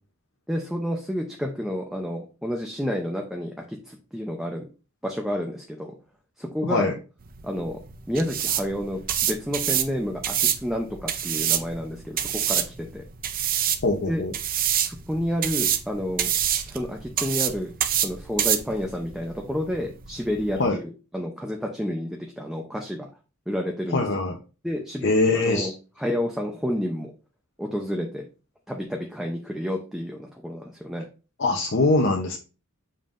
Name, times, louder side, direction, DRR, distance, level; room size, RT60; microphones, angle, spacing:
voice 1, 0.5-4.7 5.0-5.9 6.4-6.9 7.4-7.8 8.1-13.0 14.1-14.2 14.8-16.3 16.7-23.1 23.5-24.1 24.6-25.7 26.0-27.1 27.6-28.2 28.7-31.1, equal, ahead, 1 dB, 0.6 m, -30 dB
voice 2, 6.6-7.0 13.8-14.3 20.6-20.8 23.9-24.4 25.0-25.7 31.4-32.4, left 2 dB, 55° left, 1 dB, 0.8 m, -22 dB
sound 1, 7.2-20.7, right 10 dB, 40° right, 0.6 m, -27 dB
7.2 x 5.4 x 2.6 m, 0.34 s
head